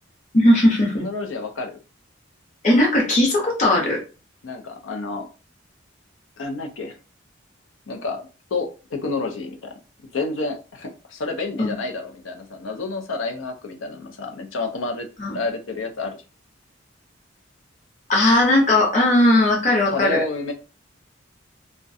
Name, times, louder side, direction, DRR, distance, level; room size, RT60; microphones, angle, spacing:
voice 1, 0.3-1.1 2.6-4.0 11.6-11.7 15.2-15.4 18.1-20.2, left 1 dB, 40° left, -2 dB, 0.8 m, -18 dB
voice 2, 1.0-1.8 4.4-5.3 6.4-7.0 7.9-9.7 10.1-16.2 19.9-20.5, left 3 dB, 80° left, 5 dB, 0.5 m, -29 dB
2.3 x 2.1 x 2.6 m, 0.32 s
head